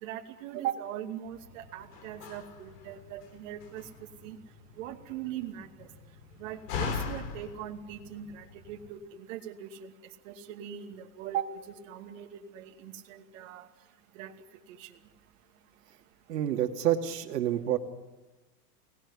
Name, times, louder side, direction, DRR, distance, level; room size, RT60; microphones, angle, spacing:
voice 1, 0.0-3.8 4.2-4.4 4.8-5.9 6.4-9.9 10.2-13.7 14.1-14.3 14.7-14.9, right 10 dB, 55° right, 3 dB, 2.5 m, -40 dB
Slam, 1.3-8.9, left 6 dB, 80° left, 4.1 m, -41 dB
voice 2, 16.3-17.8, right 11 dB, 85° right, 4 dB, 2.5 m, -28 dB
25.0 x 19.0 x 9.8 m, 1.2 s
supercardioid pair, 160°, 47 cm